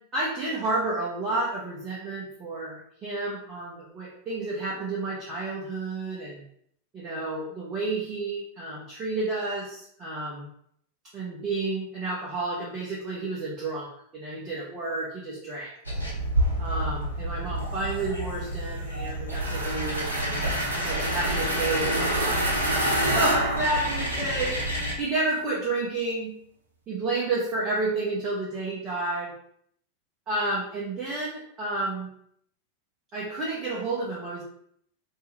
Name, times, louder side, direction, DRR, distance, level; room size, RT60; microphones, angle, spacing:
voice 1, 0.1-6.4 6.9-10.5 11.1-13.9 14.1-15.7 16.6-22.5 23.1-26.3 26.9-29.3 30.3-32.1 33.1-34.4, right 2 dB, 25° right, -7 dB, 0.8 m, -31 dB
sound 1, 15.9-24.9, right 1 dB, 85° left, 0.7 m, -29 dB
sound 2, 19.3-24.5, right 1 dB, 75° right, 0.5 m, -29 dB
2.7 x 2.3 x 3.2 m, 0.69 s
figure-of-eight pair, 90°, 0 cm